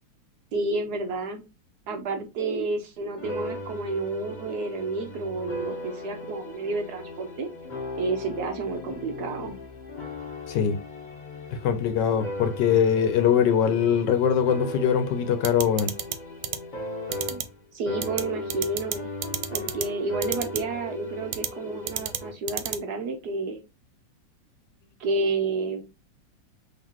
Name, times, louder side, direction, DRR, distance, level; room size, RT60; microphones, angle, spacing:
voice 1, 0.5-1.4 1.9-7.5 8.0-9.6 17.3-17.4 17.7-19.1 19.5-23.6 25.0-25.8, right 3 dB, 65° right, 1.1 m, -30 dB
sound 1, 3.2-17.6 17.9-22.3, left 2 dB, 35° left, 0.8 m, -37 dB
voice 2, 11.6-15.9, left 8 dB, 75° left, 1.2 m, -22 dB
sound 2, 15.4-16.2 16.4-16.6 17.1-17.4 18.0-18.2 18.5-19.0 19.2-19.9 20.2-20.6 21.3-21.5 21.9-22.2 22.5-22.8, right 11 dB, 90° right, 1.4 m, -29 dB
3.9 x 3.2 x 3.0 m
omnidirectional pair, 2.1 m